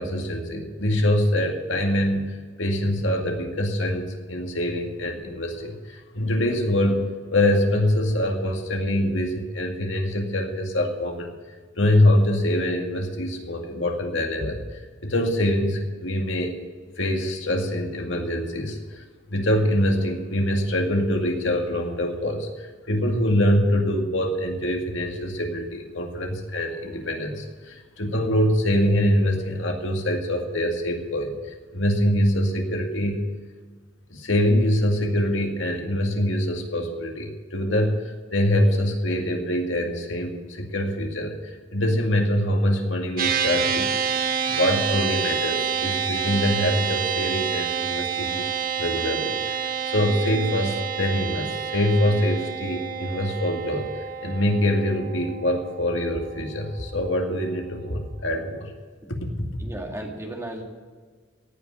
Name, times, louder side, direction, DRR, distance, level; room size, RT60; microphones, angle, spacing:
voice 1, 0.0-11.3 11.8-16.5 17.0-19.0 19.3-33.3 34.1-44.0 44.5-48.5 48.8-53.9 54.2-58.7 59.1-59.3, left 1 dB, 75° left, 2 dB, 2.1 m, -24 dB
sound 1, 43.2-56.7, right 7 dB, 50° right, 1.0 m, -28 dB
voice 2, 59.6-60.6, right 1 dB, 15° right, 1 dB, 2.0 m, -34 dB
17.5 x 6.0 x 8.8 m, 1.5 s
head